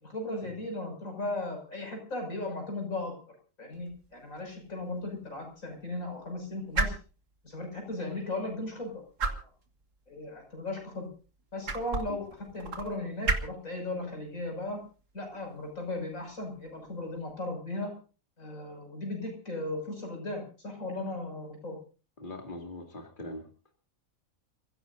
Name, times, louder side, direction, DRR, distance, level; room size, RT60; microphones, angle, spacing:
voice 1, 0.0-3.1 3.6-6.9 7.4-9.4 10.1-11.1 11.5-14.8 15.1-17.9 18.4-21.8, left 2 dB, 80° left, 2 dB, 6.7 m, -36 dB
sound 1, 3.7-17.3, right 3 dB, 70° right, 2.1 m, -38 dB
voice 2, 22.2-23.5, left 1 dB, 40° left, 2 dB, 2.6 m, -41 dB
30.0 x 16.0 x 2.7 m, 0.37 s
omnidirectional pair, 1.4 m